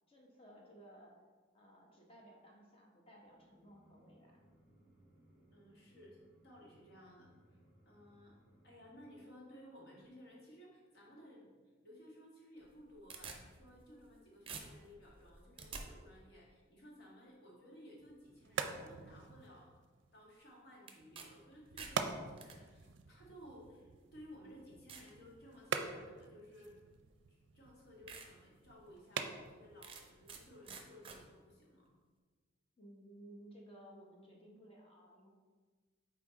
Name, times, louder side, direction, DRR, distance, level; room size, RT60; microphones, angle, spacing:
voice 1, 0.1-1.1 1.5-4.4 32.8-35.3, right 1 dB, 30° left, -1 dB, 1.2 m, -58 dB
sound 1, 3.2-9.2, right 1 dB, 10° right, 1.7 m, -67 dB
voice 2, 5.5-7.6 7.8-8.4 8.6-11.5 11.8-19.7 20.1-26.8 27.3-31.9, equal, 60° left, -4 dB, 1.8 m, -58 dB
Ripping Fabric, 12.6-14.2 14.5-15.8 20.9-21.3 21.6-22.6 23.4-23.5 24.2-24.3 24.9-25.1 25.6-26.0 27.1-27.2 27.6-27.7 28.1-28.3 28.7-28.8 29.8-30.4 30.7-31.2, right 5 dB, 30° right, 0.7 m, -49 dB
sound 2, 18.0-31.5, right 5 dB, 65° right, 0.5 m, -46 dB
6.1 x 4.3 x 4.1 m, 1.4 s
head